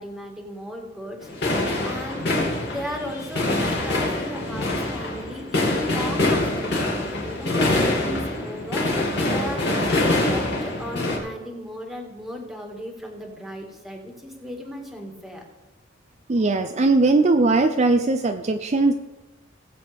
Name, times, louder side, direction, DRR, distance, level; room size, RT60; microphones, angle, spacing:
voice 1, 0.0-2.3 2.7-15.4, equal, ahead, 1 dB, 1.9 m, -36 dB
sound 1, 1.2-11.2, left 2 dB, 60° left, 2.7 m, -24 dB
voice 2, 16.3-18.9, right 3 dB, 35° right, 6 dB, 0.5 m, -19 dB
19.0 x 7.7 x 3.5 m, 1.1 s
head